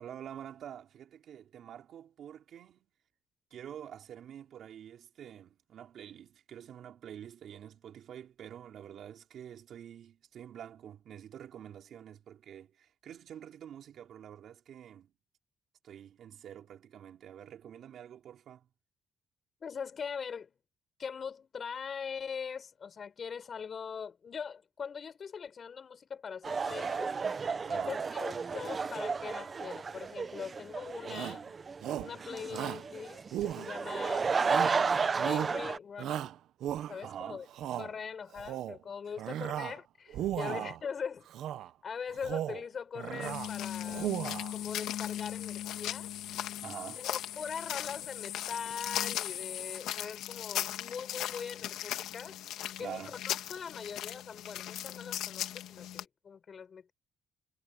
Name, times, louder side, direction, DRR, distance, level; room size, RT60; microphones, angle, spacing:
voice 1, 0.0-2.9 3.5-15.1 15.8-18.7 27.7-28.0 37.0-37.5 39.2-39.3 40.4-40.7 46.6-47.0 52.8-53.2, right 9 dB, 55° right, 4.5 m, -47 dB
voice 2, 19.6-20.6 21.0-27.1 27.6-31.4 32.0-34.3 35.2-36.3 36.9-37.4 37.8-41.3 41.8-44.1 44.5-46.1 47.0-52.4 52.8-56.9, left 6 dB, 35° left, 7.8 m, -41 dB
sound 1, 26.4-35.8, right 5 dB, 30° right, 1.0 m, -33 dB
Shout, 31.1-31.4 31.8-32.2 32.5-32.9 33.3-34.0 34.5-34.8 35.2-35.6 36.0-37.1 37.5-37.9 38.3-38.8 39.2-39.8 40.1-40.8 41.3-41.7 42.1-42.6 43.0-43.5 43.8-44.5, right 11 dB, 70° right, 1.1 m, -36 dB
sound 2, 43.2-56.0, left 12 dB, 90° left, 2.2 m, -38 dB
cardioid pair, 145°, 0 cm